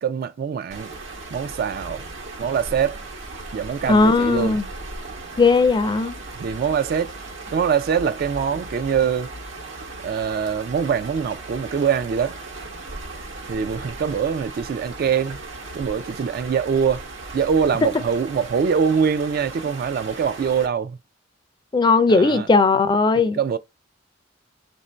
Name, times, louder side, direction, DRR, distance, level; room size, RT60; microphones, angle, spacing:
voice 1, 0.0-0.9 1.3-2.0 2.4-3.0 3.5-4.6 6.4-7.2 7.5-9.3 10.0-12.4 13.5-15.4 15.7-17.1 17.3-21.0 22.1-22.5 23.1-23.6, right 7 dB, 50° right, 0.3 m, -23 dB
sound 1, 0.7-20.7, right 2 dB, 80° right, 1.1 m, -37 dB
voice 2, 3.9-4.6 5.4-6.2 21.7-23.4, left 3 dB, 25° left, 0.4 m, -17 dB
3.6 x 2.6 x 4.2 m
head